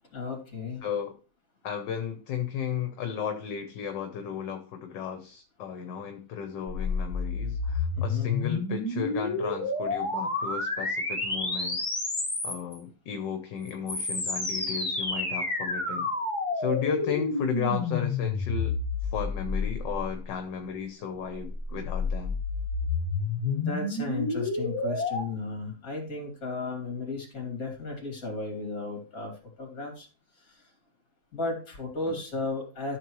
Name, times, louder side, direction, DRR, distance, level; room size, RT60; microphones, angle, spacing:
voice 1, 0.1-0.8 8.0-8.3 23.2-30.1 30.4-30.7 31.3-33.0, left 3 dB, 45° left, 2 dB, 3.3 m, -35 dB
voice 2, 0.8-1.1 1.6-11.8 12.4-16.1 16.5-18.7 19.0-22.4 32.1-32.2, left 8 dB, 70° left, 6 dB, 1.6 m, -34 dB
sound 1, 6.7-12.8 13.6-20.2 21.3-25.2, left 3 dB, 15° left, 2.5 m, -30 dB
13.5 x 6.8 x 3.1 m, 0.36 s
omnidirectional pair, 2.1 m